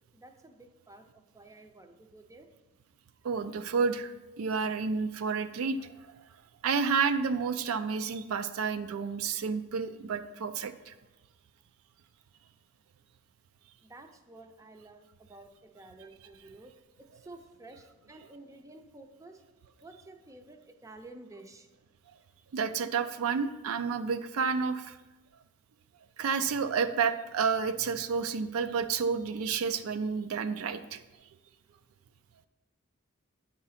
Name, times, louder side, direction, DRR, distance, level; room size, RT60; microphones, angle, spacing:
voice 1, 0.1-2.5 13.8-16.7 17.1-19.4 19.8-21.7, right 2 dB, 15° right, 5 dB, 0.5 m, -51 dB
voice 2, 3.2-5.9 6.6-10.9 22.5-25.0 26.2-31.0, right 5 dB, 70° right, 10 dB, 0.4 m, -30 dB
8.9 x 3.8 x 5.7 m, 1.1 s
head